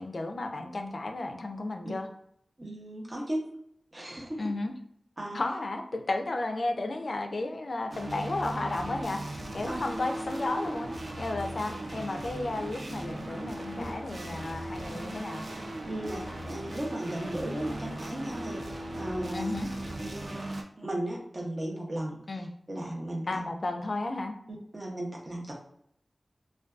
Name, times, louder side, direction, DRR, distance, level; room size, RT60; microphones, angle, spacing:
voice 1, 0.0-2.1 4.4-4.7 5.3-10.9 11.2-15.4 19.3-19.7 22.3-22.5 23.3-24.3, left 2 dB, 65° left, 5 dB, 0.3 m, -33 dB
voice 2, 2.6-3.4 3.9-4.5 5.2-5.4 9.6-9.8 13.8-14.0 15.9-19.5 20.0-20.4 20.8-23.5 24.7-25.5, right 1 dB, 35° right, -2 dB, 0.7 m, -36 dB
sound 1, 7.9-20.6, right 1 dB, 65° right, 0.3 m, -38 dB
2.5 x 2.2 x 2.3 m, 0.69 s
wide cardioid pair, 80°, 0 cm